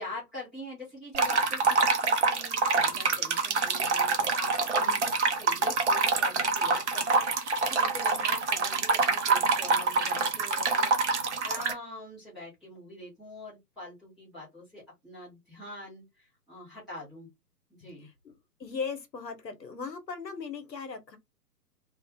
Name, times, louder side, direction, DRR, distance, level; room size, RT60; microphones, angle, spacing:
voice 1, 0.0-4.9 5.4-10.9 11.4-17.3 17.8-18.1, left 1 dB, ahead, 0.7 m, -44 dB
sound 1, 1.1-11.7, right 4 dB, 45° right, 0.5 m, -26 dB
voice 2, 4.7-5.1 17.8-18.3 18.6-21.2, left 5 dB, 80° left, 0.8 m, -38 dB
2.5 x 2.3 x 2.2 m
figure-of-eight pair, 130°, 49 cm